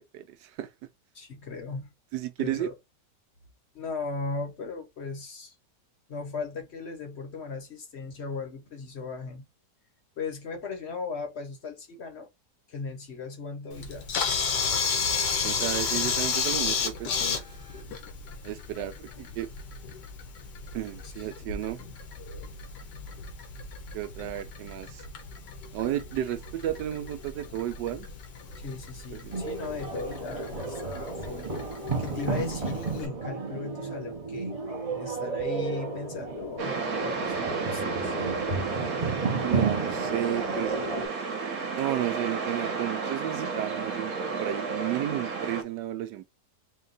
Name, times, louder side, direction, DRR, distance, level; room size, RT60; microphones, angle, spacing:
voice 1, 0.1-0.7 2.1-2.7 15.4-17.1 18.4-19.5 20.7-21.8 23.9-25.0 25.7-28.1 29.1-29.4 39.4-40.8 41.8-44.1 44.4-46.2, right 12 dB, 85° right, 1.3 m, -32 dB
voice 2, 1.1-1.9 2.4-2.7 3.7-5.5 6.1-9.5 10.2-12.3 12.7-14.1 21.0-21.5 22.2-22.5 28.6-31.5 32.0-34.5 35.0-38.2, left 4 dB, 50° left, 0.9 m, -37 dB
Camera, 13.7-33.1, left 5 dB, 85° left, 1.5 m, -33 dB
sound 1, 29.3-41.1, right 4 dB, 30° right, 0.6 m, -32 dB
sound 2, 36.6-45.6, right 4 dB, 60° right, 1.4 m, -32 dB
4.4 x 2.3 x 3.9 m
omnidirectional pair, 1.8 m